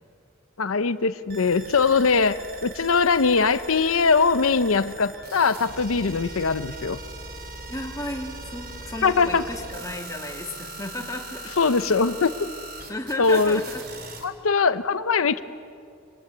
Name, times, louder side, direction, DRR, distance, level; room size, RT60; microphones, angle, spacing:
voice 1, 0.6-7.0 9.0-9.5 11.6-12.5 13.2-13.6 14.2-15.4, left 4 dB, 85° left, 12 dB, 0.7 m, -21 dB
sound 1, 1.3-14.2, right 2 dB, 50° right, 4.4 m, -40 dB
voice 2, 7.7-11.5 12.9-13.8, left 1 dB, 15° left, 1 dB, 2.5 m, -34 dB
27.0 x 25.5 x 8.4 m, 2.5 s
head